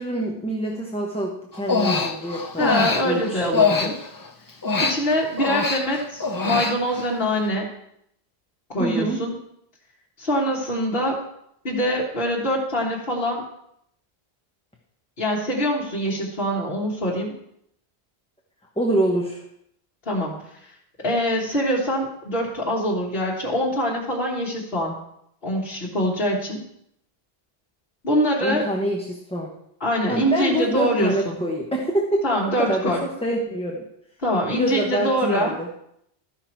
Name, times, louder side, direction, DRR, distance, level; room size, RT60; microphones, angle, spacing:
voice 1, 0.0-2.7 3.0-3.9 8.8-9.2 18.8-19.4 28.4-29.5 30.1-32.2 32.6-33.8 34.5-35.7, right 1 dB, 5° left, -1 dB, 1.0 m, -26 dB
Human voice, 1.5-4.3 4.6-7.1, left 4 dB, 25° left, 0.6 m, -23 dB
voice 2, 2.6-3.9 4.8-7.7 8.7-9.3 10.2-11.2 11.6-13.4 15.2-17.3 20.0-20.4 21.0-25.0 25.4-26.6 28.0-28.6 29.8-31.4 32.2-33.0 34.2-35.5, equal, 65° left, -6 dB, 1.8 m, -24 dB
13.5 x 5.8 x 4.5 m, 0.74 s
omnidirectional pair, 1.1 m